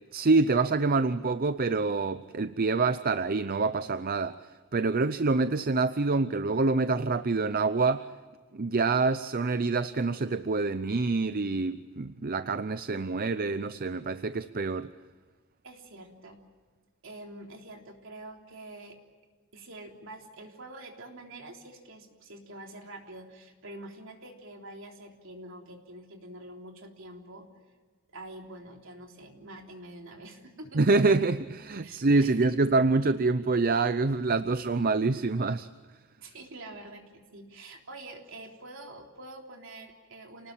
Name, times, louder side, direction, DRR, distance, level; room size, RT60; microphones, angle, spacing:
voice 1, 0.1-4.4 4.7-8.1 8.5-14.9 30.7-35.7, right 3 dB, 45° right, 12 dB, 0.6 m, -26 dB
voice 2, 15.6-16.4 17.0-19.0 19.5-27.5 28.1-30.8 31.8-32.5 36.2-40.5, right 2 dB, 60° right, 2 dB, 3.6 m, -46 dB
29.0 x 19.5 x 7.4 m, 1.5 s
head